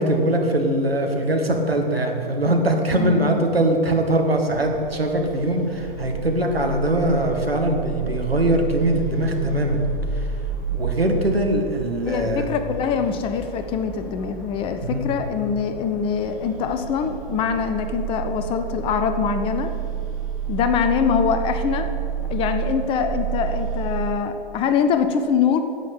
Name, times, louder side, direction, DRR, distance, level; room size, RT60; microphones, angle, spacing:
voice 1, 0.0-10.4 10.7-12.5 14.8-15.1, right 1 dB, 80° right, 3 dB, 2.0 m, -22 dB
voice 2, 2.9-3.4 12.1-19.7 20.5-21.9 22.3-25.6, left 7 dB, 20° left, 8 dB, 0.6 m, -23 dB
sound 1, 4.4-24.0, right 6 dB, ahead, 3.6 m, -30 dB
10.5 x 8.3 x 8.3 m, 2.8 s
figure-of-eight pair, 110°, 29 cm